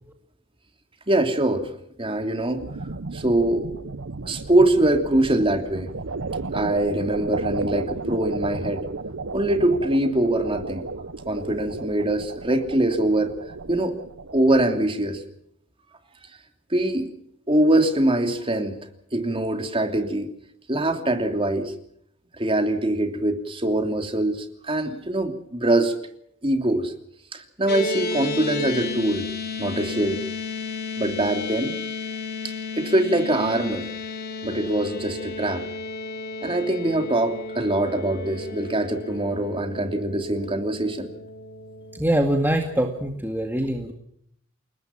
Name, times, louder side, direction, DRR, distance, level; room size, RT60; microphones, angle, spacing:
voice 1, 1.1-1.7 2.0-2.6 3.1-3.7 4.2-5.9 6.5-8.9 9.3-10.9 11.3-13.4 13.6-14.0 14.3-15.2 16.7-17.1 17.5-18.8 19.1-20.3 20.7-21.7 22.4-25.9 26.4-26.9 27.3-29.3 29.6-30.2 31.0-31.7 32.7-33.9 34.4-35.6 36.4-41.1, right 1 dB, 25° right, 6 dB, 3.0 m, -23 dB
sound 1, 2.6-14.7, right 3 dB, 85° right, 0.9 m, -33 dB
sound 2, 27.7-42.1, left 4 dB, 55° left, 3.4 m, -33 dB
voice 2, 41.9-43.9, right 1 dB, 10° right, 3 dB, 2.1 m, -23 dB
29.5 x 19.0 x 5.9 m, 0.70 s
head